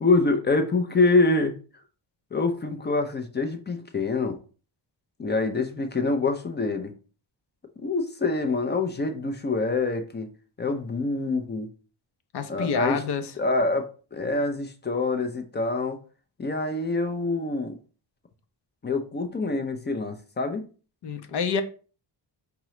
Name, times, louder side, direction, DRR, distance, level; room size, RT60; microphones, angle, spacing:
voice 1, 0.0-1.5 2.3-4.4 5.2-6.9 7.8-10.3 10.6-11.7 12.5-13.0 13.4-16.0 16.4-17.7 18.8-20.7, left 3 dB, 25° left, 0.4 m, -25 dB
voice 2, 12.3-13.3 21.0-21.6, left 6 dB, 60° left, 0.7 m, -27 dB
4.8 x 2.9 x 3.1 m
wide cardioid pair, 150°, 45 cm